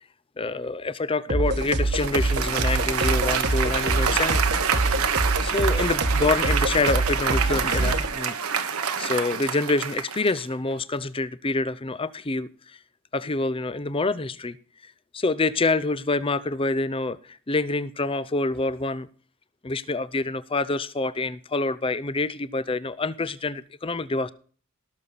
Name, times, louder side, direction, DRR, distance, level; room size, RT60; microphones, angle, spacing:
voice 1, 0.4-4.4 5.2-8.4 9.0-12.8 13.1-14.6 15.1-19.1 19.6-24.3, left 3 dB, 25° left, 15 dB, 0.6 m, -26 dB
sound 1, 1.3-8.1, right 2 dB, 50° right, 1.2 m, -25 dB
Applause, 1.6-10.5, right 7 dB, 85° right, 1.3 m, -27 dB
18.0 x 6.8 x 4.1 m, 0.42 s
head